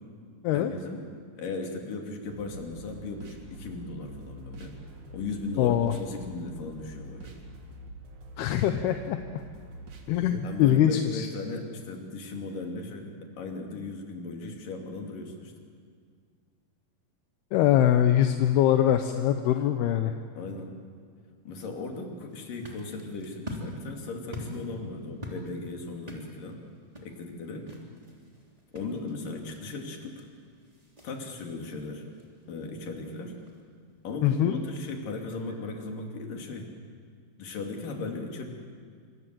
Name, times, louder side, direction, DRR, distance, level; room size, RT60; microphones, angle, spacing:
voice 1, 0.5-1.0 1.4-4.8 5.1-7.4 10.4-15.5 20.4-20.7 21.5-26.6 27.0-27.7 28.7-30.2 31.0-32.1 32.5-33.3 34.0-36.7 37.4-38.4, left 3 dB, 60° left, 2 dB, 4.2 m, -37 dB
sound 1, 2.3-10.3, right 2 dB, 55° right, 3.2 m, -46 dB
voice 2, 5.6-5.9 8.4-9.2 10.1-11.3 17.5-20.1 34.2-34.6, left 11 dB, 80° left, 7 dB, 2.9 m, -23 dB
sound 2, 22.3-35.8, equal, 10° right, 2.9 m, -46 dB
26.5 x 25.0 x 7.7 m, 2.1 s
omnidirectional pair, 4.6 m